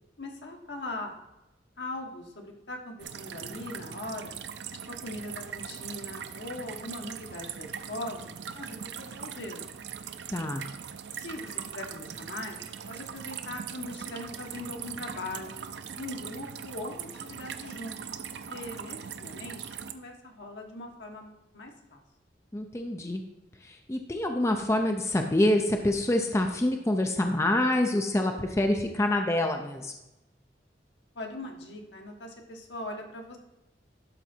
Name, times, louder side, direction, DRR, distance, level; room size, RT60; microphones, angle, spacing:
voice 1, 0.2-1.2 1.8-4.3 4.7-9.7 11.1-12.6 12.9-15.6 16.0-18.0 18.5-19.6 19.9-22.0 31.1-33.4, left 2 dB, 75° left, 2 dB, 1.4 m, -40 dB
sound 1, 3.0-19.9, right 7 dB, 70° right, 0.5 m, -40 dB
voice 2, 10.3-10.6 22.5-23.2 23.6-29.9, left 1 dB, 15° left, 4 dB, 0.5 m, -26 dB
12.0 x 4.0 x 4.4 m, 0.96 s
head